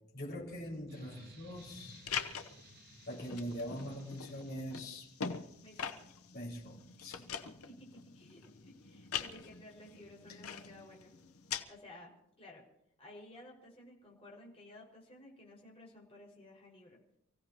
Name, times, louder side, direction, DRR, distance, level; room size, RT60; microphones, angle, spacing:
voice 1, 0.1-2.1 3.1-5.1 6.3-7.3, equal, 50° left, -4 dB, 5.4 m, -43 dB
sound 1, 0.9-5.3, right 2 dB, 55° right, 5.9 m, -58 dB
sound 2, 1.6-11.6, left 7 dB, 80° left, 1.0 m, -44 dB
voice 2, 5.6-6.1 7.2-7.4 7.7-11.1 11.7-12.6 13.0-17.0, left 1 dB, 30° left, -4 dB, 5.4 m, -55 dB
29.5 x 16.0 x 3.0 m, 0.79 s
head